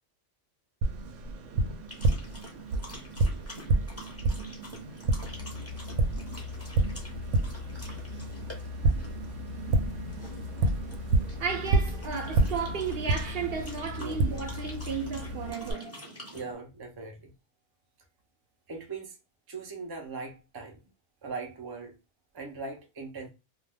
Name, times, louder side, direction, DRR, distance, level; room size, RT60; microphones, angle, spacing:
Tap, 0.8-15.7, right 2 dB, 90° right, 0.9 m, -30 dB
sound 1, 1.9-16.5, equal, 15° left, 0.7 m, -47 dB
sound 2, 5.2-15.5, left 4 dB, 65° left, 0.8 m, -40 dB
voice 1, 11.4-15.9, right 6 dB, 60° right, 0.8 m, -34 dB
voice 2, 15.7-17.3 18.7-19.2 19.5-20.8 21.2-22.0 22.3-23.3, right 4 dB, 35° right, 0.3 m, -40 dB
2.3 x 2.2 x 3.3 m
omnidirectional pair, 1.2 m